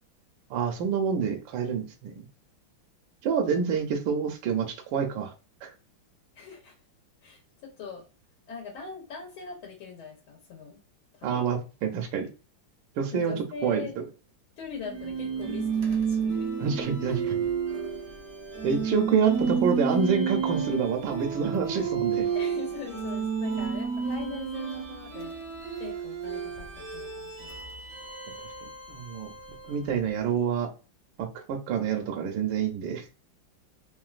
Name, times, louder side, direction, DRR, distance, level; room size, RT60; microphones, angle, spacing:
voice 1, 0.5-2.3 3.2-5.3 5.6-5.7 11.2-12.3 13.0-13.3 13.6-13.9 16.6-17.4 18.6-22.3 28.9-29.3 29.7-30.7 31.2-33.0, right 6 dB, 75° right, 3 dB, 1.2 m, -27 dB
voice 2, 6.3-6.7 7.2-8.0 8.5-10.8 11.1-11.5 13.1-14.0 14.6-16.5 22.3-27.6, left 6 dB, 75° left, -2 dB, 1.7 m, -42 dB
sound 1, 14.8-29.9, right 6 dB, 55° right, 0.7 m, -31 dB
3.7 x 2.2 x 2.3 m, 0.33 s
omnidirectional pair, 2.3 m